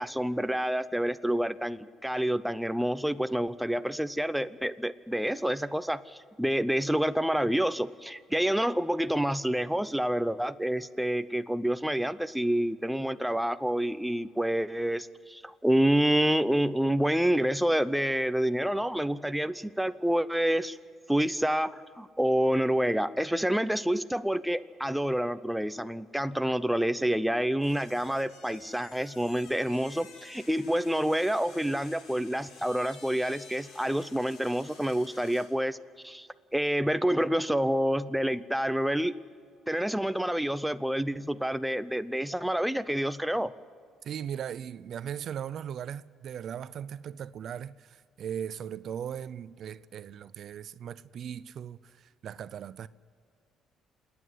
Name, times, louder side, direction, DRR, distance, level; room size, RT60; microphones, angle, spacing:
voice 1, 0.0-20.8 21.1-35.8 36.0-39.1 39.7-43.5, right 1 dB, 5° right, 0.5 m, -28 dB
sound 1, 27.6-35.6, left 4 dB, 75° left, 3.4 m, -52 dB
voice 2, 44.0-52.9, right 9 dB, 55° right, 0.5 m, -38 dB
28.0 x 9.5 x 10.0 m
cardioid pair, 110°, 0 cm